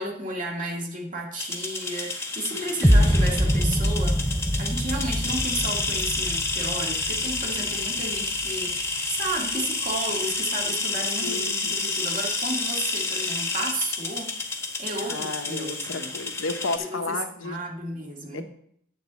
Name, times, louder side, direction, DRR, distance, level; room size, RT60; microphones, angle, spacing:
voice 1, 0.0-16.1 16.9-18.4, right 2 dB, 40° right, 0 dB, 1.9 m, -33 dB
sound 1, 1.4-16.8, left 3 dB, 15° left, 1.0 m, -29 dB
voice 2, 2.5-3.1 11.2-11.8 15.1-17.6 18.3-18.4, left 3 dB, 70° left, 7 dB, 0.8 m, -33 dB
sound 2, 2.8-8.8, equal, ahead, 0.4 m, -24 dB
9.1 x 4.0 x 7.2 m, 0.67 s
head